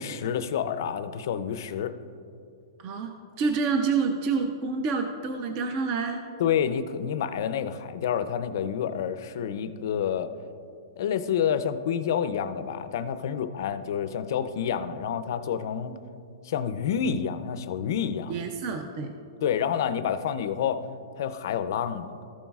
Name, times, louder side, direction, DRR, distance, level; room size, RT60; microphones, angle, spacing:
voice 1, 0.0-1.9 6.4-10.3 11.0-15.9 16.4-18.3 19.4-20.8 21.2-22.2, left 8 dB, 50° left, 12 dB, 0.4 m, -28 dB
voice 2, 2.8-6.2 18.3-19.1, right 5 dB, 30° right, 5 dB, 0.4 m, -28 dB
14.0 x 7.2 x 2.3 m, 2.5 s
hypercardioid pair, 170°, 2 cm